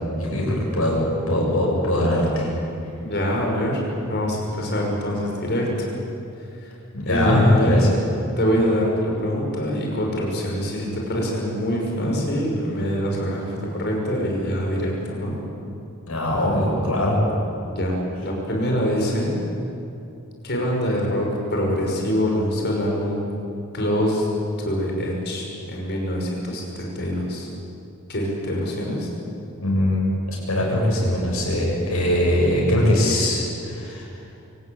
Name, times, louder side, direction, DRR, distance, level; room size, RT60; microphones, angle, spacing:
voice 1, 0.1-2.5 6.9-7.9 12.0-12.1 16.1-17.2 29.6-34.1, left 1 dB, 75° left, -3 dB, 8.0 m, -21 dB
voice 2, 3.0-3.8 4.1-5.9 6.6-6.7 7.0-7.8 8.4-15.3 17.7-19.3 20.4-23.2 23.7-24.3 24.6-27.5 28.1-29.1, equal, 50° left, -1 dB, 6.2 m, -24 dB
25.0 x 17.5 x 8.9 m, 2.7 s
head